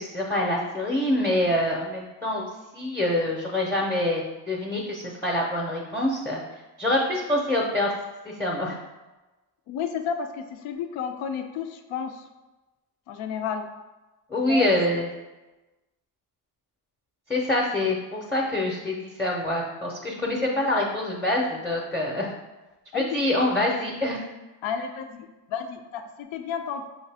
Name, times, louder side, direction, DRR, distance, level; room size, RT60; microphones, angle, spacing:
voice 1, 0.0-2.5 2.7-6.4 6.8-7.9 8.3-8.8 14.3-15.1 17.3-22.3 22.9-24.2, left 1 dB, 5° left, -2 dB, 0.7 m, -25 dB
voice 2, 9.7-12.3 13.1-13.7 14.5-14.7 22.9-23.2 24.6-26.9, left 7 dB, 75° left, 7 dB, 0.6 m, -32 dB
5.7 x 2.7 x 3.4 m, 1.1 s
cardioid pair, 90°, 47 cm